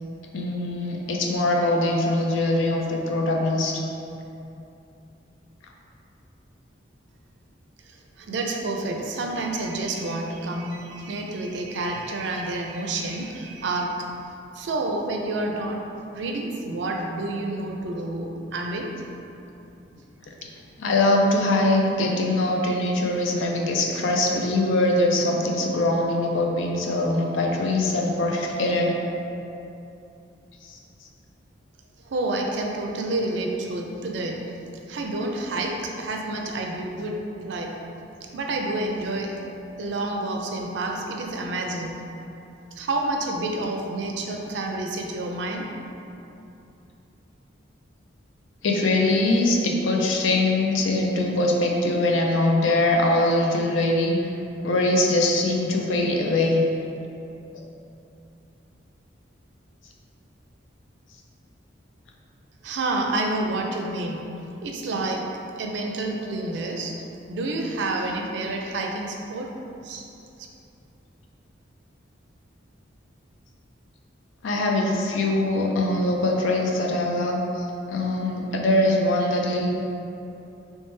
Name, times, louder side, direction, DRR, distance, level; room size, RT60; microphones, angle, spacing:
voice 1, 0.3-3.8 20.8-29.0 30.6-30.8 48.6-54.2 54.6-56.6 74.4-79.7, left 2 dB, 85° left, 0 dB, 0.5 m, -22 dB
voice 2, 7.9-14.1 14.5-15.8 16.1-18.9 32.0-34.4 34.9-37.8 38.3-39.4 39.8-42.0 42.8-45.7 62.6-64.2 64.6-69.6 69.8-70.1, right 2 dB, 65° right, 1 dB, 0.4 m, -29 dB
3.2 x 3.1 x 3.2 m, 2.8 s
head